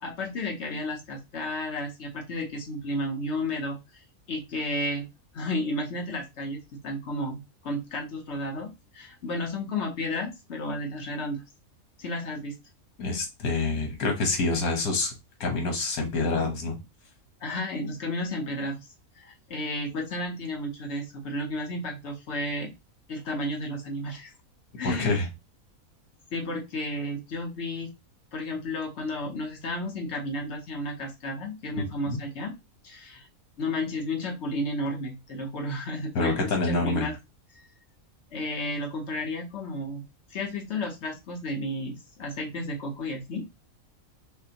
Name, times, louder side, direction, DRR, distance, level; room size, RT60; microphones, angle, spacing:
voice 1, 0.0-3.8 4.3-5.1 5.3-11.4 12.0-12.5 17.4-18.9 19.2-22.7 23.1-24.3 24.8-25.2 26.3-27.9 28.3-32.5 32.8-33.3 33.6-37.1 38.3-40.0 40.3-43.4, left 1 dB, 55° left, 1.2 m, -32 dB
voice 2, 13.0-15.1 15.4-16.8 24.8-25.3 32.1-32.2 36.1-37.1, left 3 dB, 85° left, 1.5 m, -26 dB
5.3 x 2.1 x 2.8 m
omnidirectional pair, 1.5 m